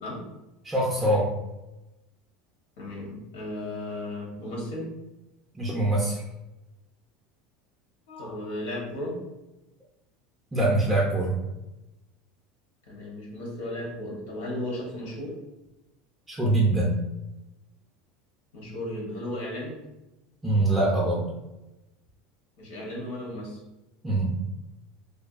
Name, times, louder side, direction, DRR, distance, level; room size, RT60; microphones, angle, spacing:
voice 1, 0.6-1.3 5.5-6.2 10.5-11.3 16.3-17.0 20.4-21.3 24.0-24.3, right 2 dB, 10° right, -6 dB, 0.4 m, -23 dB
voice 2, 2.8-4.9 8.1-9.2 12.9-15.3 18.5-19.8 22.6-23.6, left 1 dB, 85° left, -2 dB, 1.0 m, -35 dB
2.5 x 2.3 x 2.4 m, 0.98 s
supercardioid pair, 150°, 0 cm